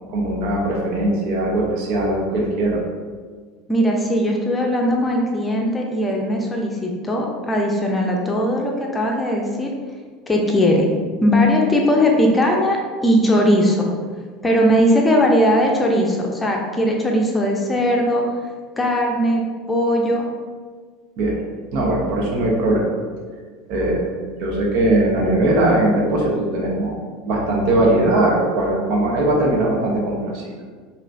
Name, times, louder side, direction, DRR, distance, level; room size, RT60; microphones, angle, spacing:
voice 1, 0.1-2.8 21.2-21.4 21.7-22.9 23.7-24.1 24.4-26.9 27.3-30.5, right 1 dB, 60° right, -2 dB, 1.0 m, -20 dB
voice 2, 3.7-9.7 10.3-10.9 11.2-12.8 13.0-13.9 14.4-18.2 18.8-19.4 19.7-20.3, equal, 15° left, 0 dB, 0.7 m, -19 dB
5.2 x 2.8 x 2.6 m, 1.5 s
hypercardioid pair, 75°, 0 cm